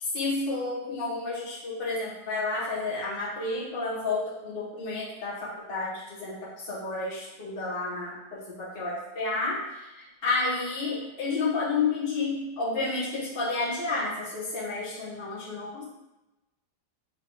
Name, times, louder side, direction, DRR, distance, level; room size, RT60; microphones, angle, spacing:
voice 1, 0.1-9.9 10.2-15.8, left 3 dB, 40° left, -7 dB, 1.0 m, -31 dB
6.1 x 2.8 x 3.0 m, 1.0 s
omnidirectional pair, 1.9 m